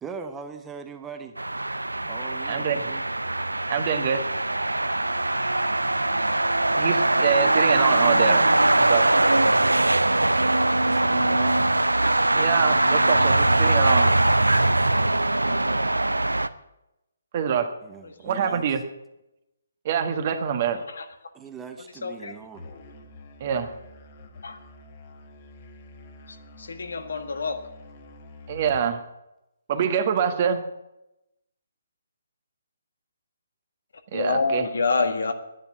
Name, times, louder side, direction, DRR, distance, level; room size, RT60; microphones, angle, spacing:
voice 1, 0.0-1.4 2.0-3.0 10.8-11.6 17.8-18.7 21.3-22.7, right 5 dB, 10° right, 1.0 m, -40 dB
sound 1, 1.4-16.5, right 2 dB, 90° right, 0.6 m, -21 dB
voice 2, 2.4-2.9 3.7-4.3 6.8-8.5 8.7-9.1 12.3-14.1 17.3-17.7 18.2-18.8 19.8-20.8 23.4-23.7 28.5-29.0 29.7-30.6 34.1-34.7, right 7 dB, 40° right, 1.5 m, -25 dB
voice 3, 15.5-15.9 22.0-22.3 24.4-24.6 26.7-27.6 34.1-35.3, left 3 dB, 65° left, 1.7 m, -26 dB
Musical instrument, 22.6-28.9, left 1 dB, 40° left, 1.8 m, -47 dB
10.5 x 10.5 x 8.5 m
figure-of-eight pair, 140°, 0 cm